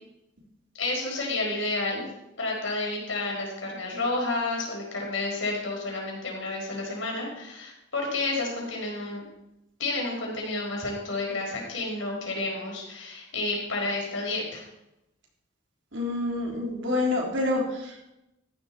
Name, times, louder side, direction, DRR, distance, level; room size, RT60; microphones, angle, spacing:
voice 1, 0.8-2.0 2.4-9.2 9.8-14.6, left 2 dB, 80° left, -1 dB, 5.0 m, -30 dB
voice 2, 15.9-18.1, left 2 dB, 70° right, -1 dB, 3.7 m, -28 dB
14.0 x 11.5 x 4.5 m, 0.89 s
head